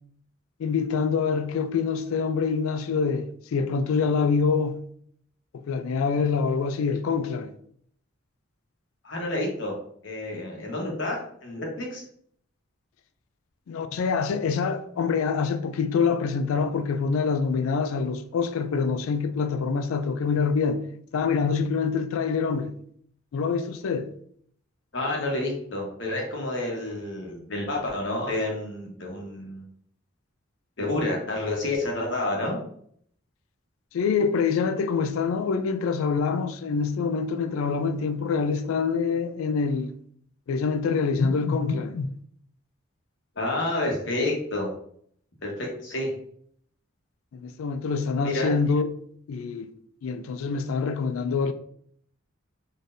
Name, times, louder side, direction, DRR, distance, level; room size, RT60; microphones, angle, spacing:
voice 1, 0.6-4.8 5.5-7.5 13.7-20.8 21.1-22.7 23.3-24.1 33.9-39.9 40.5-42.1 47.3-48.9 49.3-49.7 50.0-51.5, left 5 dB, 85° left, 0.3 m, -25 dB
voice 2, 9.0-9.7 10.0-12.0 24.9-29.6 30.8-32.6 43.3-44.7 45.4-46.1 48.2-48.5, left 2 dB, 60° left, 1.2 m, -29 dB
3.9 x 3.2 x 2.6 m
head